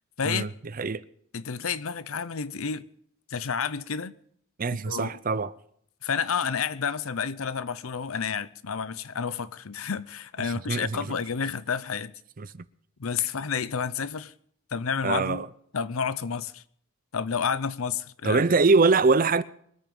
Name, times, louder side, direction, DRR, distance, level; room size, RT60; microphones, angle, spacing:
voice 1, 1.3-2.8 3.3-4.2 4.9-5.1 6.0-12.1 13.0-14.3 14.7-15.4 15.7-16.6 17.1-18.4, left 6 dB, 80° left, 0.7 m, -30 dB
voice 2, 4.6-5.5 10.4-11.2 12.4-12.7 15.0-15.5 18.2-19.4, right 4 dB, 40° right, 0.6 m, -23 dB
23.0 x 8.9 x 5.4 m
head